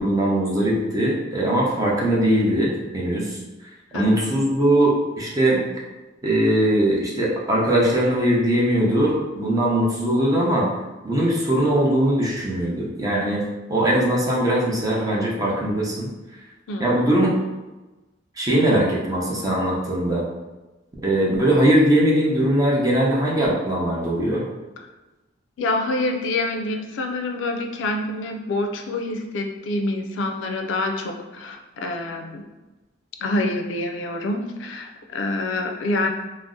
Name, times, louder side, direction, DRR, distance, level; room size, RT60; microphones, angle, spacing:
voice 1, 0.0-3.4 3.9-5.6 6.2-10.7 11.0-13.4 13.7-16.1 16.8-17.3 18.4-20.2 21.0-24.4, right 1 dB, 20° right, -4 dB, 0.6 m, -20 dB
voice 2, 3.9-4.2 16.7-17.0 25.6-32.4 33.2-36.1, left 2 dB, 70° left, 4 dB, 0.4 m, -26 dB
2.6 x 2.0 x 3.6 m, 1.1 s
head